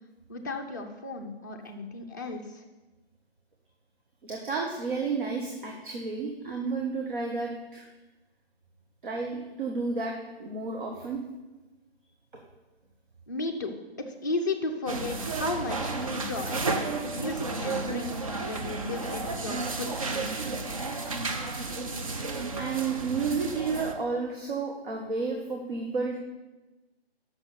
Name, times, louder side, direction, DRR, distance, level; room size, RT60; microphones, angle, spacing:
voice 1, 0.3-2.6 13.3-13.7 14.1-16.6 17.1-20.6, left 2 dB, 20° left, 0 dB, 0.5 m, -34 dB
voice 2, 4.2-7.8 9.0-10.1 10.4-11.2 21.5-21.6 22.6-26.2, right 4 dB, 55° right, 0 dB, 1.2 m, -31 dB
sound 1, 14.9-23.9, right 3 dB, 35° right, 0.6 m, -32 dB
6.2 x 6.0 x 6.6 m, 1.1 s
figure-of-eight pair, 150°, 31 cm